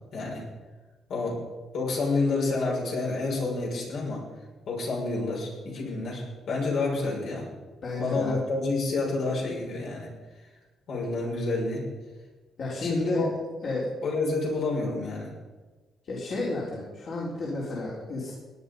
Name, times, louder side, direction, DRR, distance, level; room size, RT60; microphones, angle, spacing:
voice 1, 0.1-0.4 1.1-1.4 1.7-4.2 4.7-7.5 8.0-10.1 10.9-11.9 12.8-13.3 14.0-15.3, left 3 dB, 75° left, -3 dB, 6.1 m, -29 dB
voice 2, 7.8-8.4 12.6-13.2 13.6-13.9 16.0-18.3, left 2 dB, 55° left, -6 dB, 3.9 m, -31 dB
18.0 x 10.0 x 5.4 m, 1.3 s
cardioid pair, 90°, 0 cm